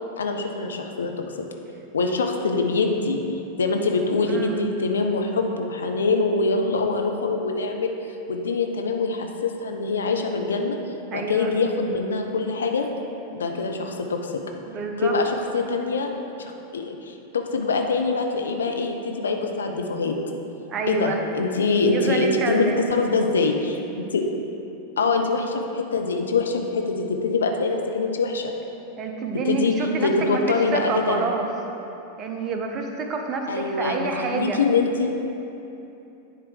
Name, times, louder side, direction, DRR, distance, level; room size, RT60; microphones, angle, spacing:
voice 1, 0.2-1.1 1.9-3.2 3.6-7.9 8.3-10.8 11.1-12.9 13.3-14.3 15.0-16.1 16.4-20.2 20.9-23.8 24.1-24.2 25.0-28.5 29.4-29.7 30.0-31.2 33.5-35.3, left 3 dB, 70° left, 3 dB, 0.6 m, -24 dB
voice 2, 4.3-4.6 11.1-11.5 14.7-15.2 20.7-21.2 21.9-22.9 29.0-31.5 32.2-34.6, right 4 dB, 30° right, 3 dB, 0.7 m, -28 dB
9.9 x 3.3 x 4.8 m, 2.8 s
figure-of-eight pair, 90°, 0 cm